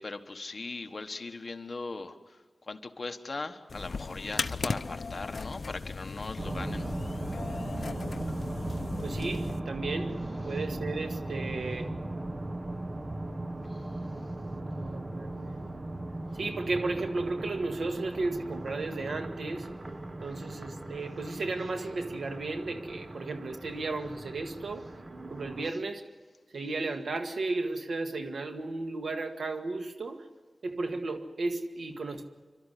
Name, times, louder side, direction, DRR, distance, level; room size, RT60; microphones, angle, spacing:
voice 1, 0.0-2.4 2.7-6.9 13.7-13.8, left 3 dB, 45° left, 5 dB, 1.4 m, -39 dB
sound 1, 3.7-9.6, left 4 dB, 65° left, 0.7 m, -37 dB
sound 2, 6.4-25.7, right 1 dB, 35° right, 1.1 m, -38 dB
voice 2, 9.0-10.2 10.4-11.9 14.4-15.7 16.3-19.7 20.2-25.0 25.3-26.0 26.5-30.3 30.6-32.2, right 3 dB, 90° right, 5 dB, 1.8 m, -34 dB
28.0 x 13.0 x 10.0 m, 1.4 s
wide cardioid pair, 100°, 0 cm